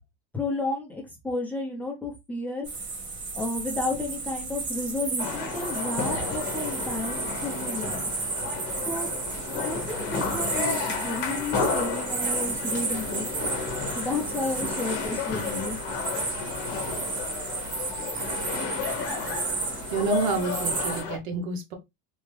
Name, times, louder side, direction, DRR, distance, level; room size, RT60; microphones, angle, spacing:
voice 1, 0.3-2.7 3.3-8.1 8.9-9.1 9.6-13.3 13.9-15.8, left 2 dB, 5° left, 0.7 m, -32 dB
sound 1, 2.6-21.0, right 4 dB, 50° right, 1.7 m, -33 dB
sound 2, 5.2-21.2, left 5 dB, 35° left, 1.1 m, -32 dB
voice 2, 19.9-21.7, right 4 dB, 85° right, 1.2 m, -28 dB
3.5 x 2.2 x 3.2 m
supercardioid pair, 165°, 31 cm